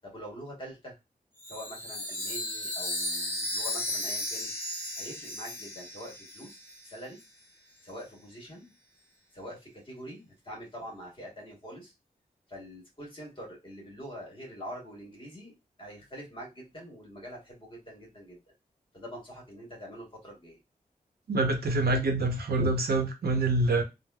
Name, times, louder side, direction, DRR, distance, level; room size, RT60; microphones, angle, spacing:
voice 1, 0.0-0.9 1.5-4.5 5.0-6.6 6.8-7.2 7.8-8.7 9.3-11.9 12.5-15.5 15.8-18.4 18.9-20.6, equal, 35° left, 1.2 m, -44 dB
Chime, 1.4-6.9, left 1 dB, 15° left, 1.0 m, -35 dB
voice 2, 21.3-23.8, right 2 dB, 80° right, 0.7 m, -26 dB
3.3 x 2.0 x 2.2 m
wide cardioid pair, 70°, 16 cm